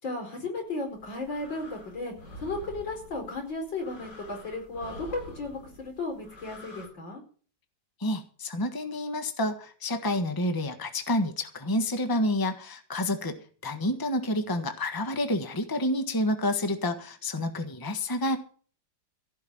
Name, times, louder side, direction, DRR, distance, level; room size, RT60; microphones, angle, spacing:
voice 1, 0.0-2.1 2.4-7.2, left 2 dB, 85° left, 2 dB, 5.3 m, -35 dB
sound 1, 0.8-6.9, equal, 70° left, 4.7 m, -47 dB
voice 2, 8.0-18.4, left 1 dB, 15° left, 7 dB, 1.2 m, -29 dB
15.5 x 6.2 x 8.7 m, 0.42 s
omnidirectional pair, 2.0 m